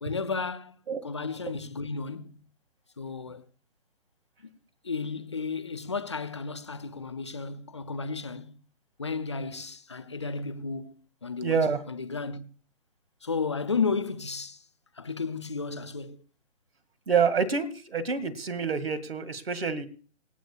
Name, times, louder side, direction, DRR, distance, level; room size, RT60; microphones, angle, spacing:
voice 1, 0.0-2.4 3.0-3.5 4.8-8.6 9.0-10.9 11.2-12.4 13.2-14.6 14.9-16.2, left 4 dB, 25° left, 0.6 m, -33 dB
voice 2, 11.4-11.8 17.1-19.9, right 5 dB, 50° right, 2.1 m, -27 dB
26.5 x 9.2 x 2.3 m
figure-of-eight pair, 140°, 37 cm